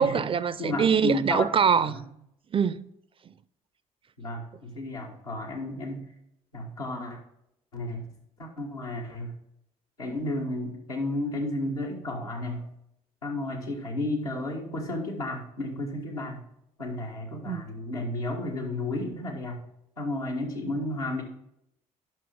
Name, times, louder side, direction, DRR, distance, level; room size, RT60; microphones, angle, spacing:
voice 1, 0.0-2.0 2.5-2.9 17.4-17.7, right 7 dB, 30° right, 0.4 m, -24 dB
voice 2, 0.6-1.4 1.8-2.1 4.2-6.1 6.5-7.2 7.7-8.1 8.4-9.3 10.0-12.7 13.2-16.4 16.8-19.6 20.0-21.2, left 1 dB, 90° left, 1.4 m, -32 dB
9.1 x 5.9 x 3.4 m
figure-of-eight pair, 50°, 18 cm